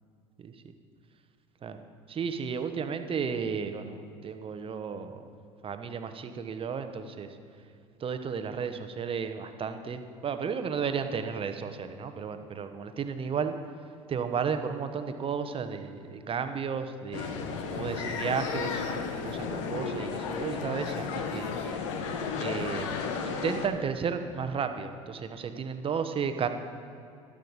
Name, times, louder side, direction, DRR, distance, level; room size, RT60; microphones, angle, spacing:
voice 1, 0.4-0.7 1.6-1.8 2.1-5.3 5.6-7.4 8.0-13.5 14.1-21.5 22.4-22.9 23.2-26.5, right 6 dB, 35° right, 8 dB, 0.9 m, -33 dB
sound 1, 17.1-23.7, left 5 dB, 70° left, 1.0 m, -33 dB
12.5 x 10.5 x 4.0 m, 2.4 s
hypercardioid pair, 65°, 17 cm